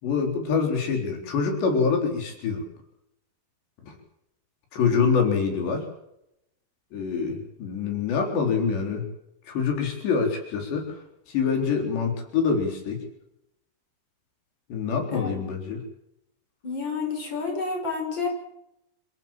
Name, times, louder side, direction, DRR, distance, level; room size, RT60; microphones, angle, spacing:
voice 1, 0.0-2.6 3.9-4.0 4.7-5.9 6.9-9.1 9.5-13.0 14.7-15.8, left 5 dB, 85° left, 4 dB, 6.1 m, -25 dB
voice 2, 15.1-15.4 16.6-18.3, left 4 dB, 25° left, 3 dB, 6.0 m, -30 dB
27.5 x 15.0 x 7.5 m, 0.80 s
omnidirectional pair, 4.8 m